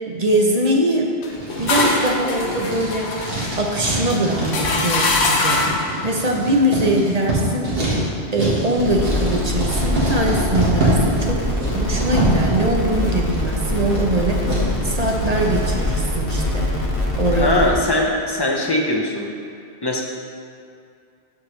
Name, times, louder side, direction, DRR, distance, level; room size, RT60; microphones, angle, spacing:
voice 1, 0.1-1.1 1.6-3.1 3.6-5.6 6.0-7.7 8.3-11.4 11.7-16.7 17.2-17.6, right 1 dB, 40° right, 0 dB, 0.7 m, -22 dB
sound 1, 1.2-5.9, left 3 dB, 70° left, 1.1 m, -23 dB
Writing, 1.3-15.7, right 1 dB, 55° right, 1.9 m, -25 dB
sound 2, 8.8-17.7, left 1 dB, 55° left, 1.3 m, -23 dB
voice 2, 17.3-19.3 19.8-20.0, left 1 dB, 25° left, 0 dB, 0.6 m, -20 dB
13.0 x 4.6 x 3.2 m, 2.4 s
omnidirectional pair, 1.1 m